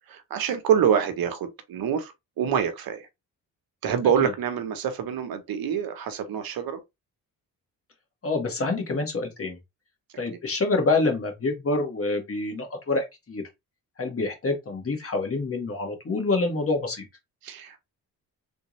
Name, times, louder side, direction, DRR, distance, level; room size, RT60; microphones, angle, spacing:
voice 1, 0.1-3.1 3.8-6.8 17.4-17.8, right 8 dB, 70° right, 0.9 m, -26 dB
voice 2, 8.2-9.6 10.2-13.4 14.0-17.0, left 3 dB, 35° left, 1.6 m, -27 dB
3.4 x 2.6 x 3.1 m
cardioid pair, 80°, 37 cm